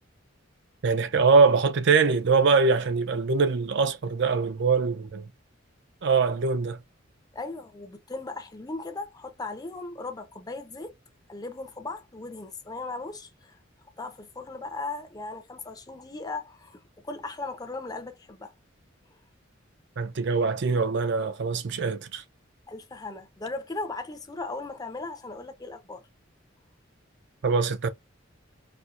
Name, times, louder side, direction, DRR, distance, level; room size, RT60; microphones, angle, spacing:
voice 1, 0.8-5.3 6.0-6.8 20.0-22.2 27.4-27.9, right 4 dB, 60° right, 0.5 m, -23 dB
voice 2, 7.3-11.0 11.3-13.6 14.0-18.5 22.7-26.0, left 3 dB, 20° left, 0.6 m, -37 dB
4.3 x 2.2 x 2.4 m
head